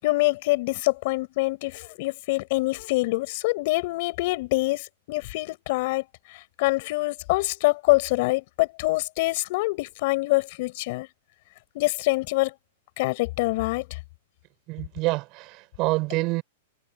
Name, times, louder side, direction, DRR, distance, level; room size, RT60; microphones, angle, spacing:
voice 1, 0.0-6.0 6.6-11.1 11.7-12.5 13.0-13.9, left 22 dB, 45° left, 7.6 m, -25 dB
voice 2, 14.7-16.4, right 22 dB, 35° right, 5.2 m, -27 dB
supercardioid pair, 160°, 0 cm